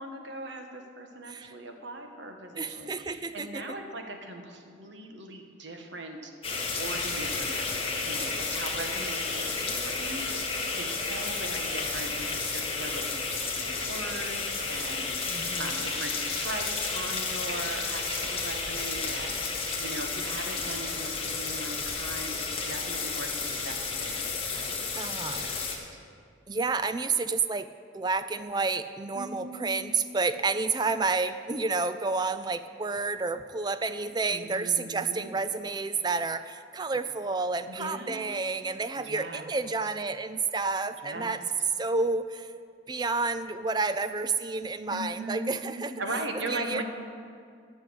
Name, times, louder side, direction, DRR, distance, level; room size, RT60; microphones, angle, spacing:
voice 1, 0.0-6.3 6.8-24.2 24.5-25.9 29.1-30.0 34.3-35.3 37.7-38.3 39.0-39.5 41.0-41.3 44.9-46.8, right 2 dB, 65° right, 4 dB, 1.3 m, -39 dB
voice 2, 2.6-3.6 15.3-15.8 24.9-25.4 26.5-41.4 41.8-42.5 42.9-46.2 46.5-46.8, right 4 dB, 20° right, 12 dB, 0.4 m, -30 dB
sound 1, 6.4-25.8, left 4 dB, 30° left, 1.5 m, -32 dB
12.5 x 6.2 x 7.9 m, 2.3 s
head